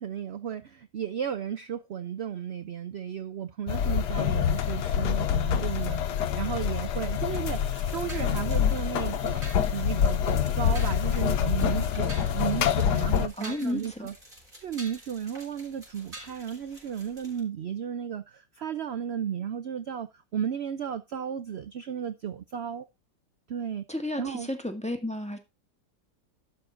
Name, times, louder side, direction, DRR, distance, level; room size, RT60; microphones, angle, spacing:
voice 1, 0.0-9.4 9.7-14.1 14.5-22.8 23.5-23.8 24.2-24.5, right 8 dB, 65° right, 0.6 m, -34 dB
sound 1, 3.7-13.3, left 9 dB, 70° left, 1.4 m, -26 dB
sound 2, 7.0-17.4, right 1 dB, 30° right, 5.3 m, -48 dB
voice 2, 13.4-14.1 23.9-25.4, left 1 dB, 5° left, 1.4 m, -32 dB
12.0 x 6.3 x 3.9 m
omnidirectional pair, 1.8 m